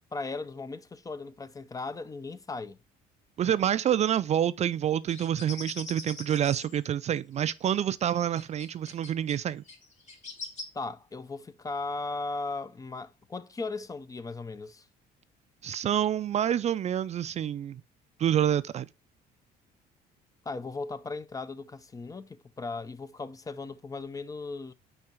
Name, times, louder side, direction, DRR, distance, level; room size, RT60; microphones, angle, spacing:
voice 1, 0.1-2.8 10.7-14.8 20.5-24.7, left 3 dB, 20° left, 0.5 m, -37 dB
voice 2, 3.4-9.6 15.6-17.8 18.2-18.9, right 10 dB, 40° right, 0.4 m, -27 dB
sound 1, 5.1-6.8 7.6-7.7 8.3-9.4 9.7-10.6, left 3 dB, 45° left, 2.2 m, -42 dB
5.5 x 4.6 x 5.2 m
cardioid pair, 110°, 17 cm